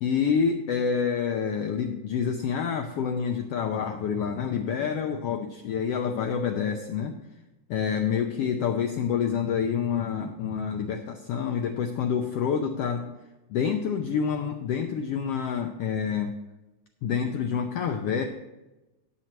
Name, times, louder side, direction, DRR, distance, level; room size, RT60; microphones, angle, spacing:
voice 1, 0.0-7.2 7.7-13.1 13.5-16.3 17.0-18.3, left 7 dB, 90° left, 5 dB, 1.3 m, -27 dB
17.5 x 7.9 x 3.1 m, 1.0 s
omnidirectional pair, 3.5 m